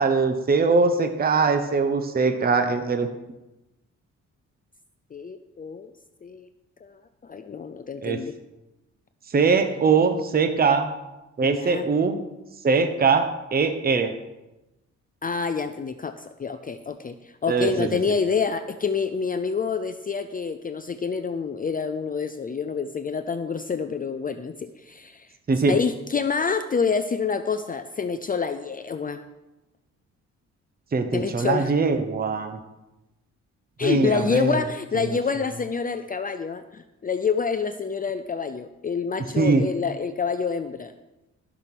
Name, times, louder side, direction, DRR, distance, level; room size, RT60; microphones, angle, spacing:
voice 1, 0.0-3.1 8.0-8.2 9.3-10.9 11.4-12.2 12.6-14.2 17.5-17.9 25.5-25.8 30.9-32.6 33.8-34.6 35.0-35.2 39.4-39.6, right 4 dB, 30° right, 7 dB, 1.0 m, -22 dB
voice 2, 5.1-5.9 6.2-6.5 6.8-8.3 11.4-11.8 15.2-25.3 25.7-29.2 31.1-31.7 33.8-40.9, left 5 dB, 30° left, 9 dB, 0.5 m, -27 dB
14.0 x 6.2 x 6.1 m, 0.98 s
cardioid pair, 125°, 30 cm